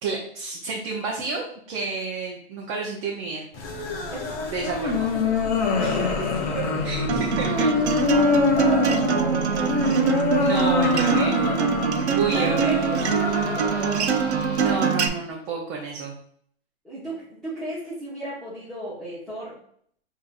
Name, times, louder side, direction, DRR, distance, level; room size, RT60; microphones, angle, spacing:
voice 1, 0.0-3.4 4.5-5.1 5.8-5.9 6.8-7.7 10.4-11.6 12.2-12.9 14.5-16.2, right 4 dB, 30° right, -1 dB, 0.7 m, -30 dB
sound 1, 3.5-14.8, left 3 dB, 20° left, 0.5 m, -25 dB
voice 2, 4.1-4.5 4.8-4.9 5.8-6.9 7.7-7.8 8.1-10.4 12.0-14.2 16.8-19.5, right 2 dB, ahead, -10 dB, 0.8 m, -34 dB
Acoustic guitar, 7.1-15.1, right 6 dB, 80° right, 0.8 m, -24 dB
6.2 x 2.7 x 2.5 m, 0.64 s
hypercardioid pair, 150°, 33 cm